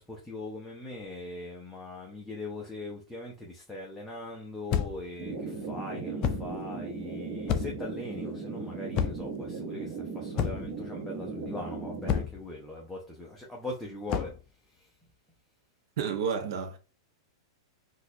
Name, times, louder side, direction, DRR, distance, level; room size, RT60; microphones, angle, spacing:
voice 1, 0.0-14.3 14.7-14.9, left 2 dB, 5° left, 0.7 m, -41 dB
sound 1, 4.7-5.1 6.2-6.5 7.5-7.9 8.9-9.4 10.4-10.8 12.1-12.5 14.1-14.4, left 8 dB, 35° left, 0.4 m, -30 dB
sound 2, 5.2-12.2, right 4 dB, 35° right, 1.0 m, -37 dB
voice 2, 16.0-16.8, right 7 dB, 65° right, 0.7 m, -30 dB
3.9 x 2.4 x 2.7 m
supercardioid pair, 145°, 2 cm